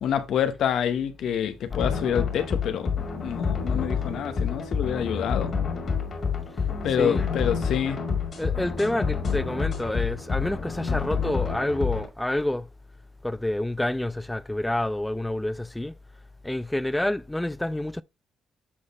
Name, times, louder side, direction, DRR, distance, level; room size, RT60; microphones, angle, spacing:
voice 1, 0.0-2.9 3.2-5.5 6.8-8.0, left 9 dB, 75° left, 1.0 m, -27 dB
sound 1, 1.7-12.1, left 5 dB, 45° left, 2.3 m, -28 dB
voice 2, 8.4-12.7 13.2-16.0 16.4-18.0, left 1 dB, 10° left, 0.3 m, -28 dB
7.6 x 4.0 x 3.5 m
cardioid pair, 90°, 0 cm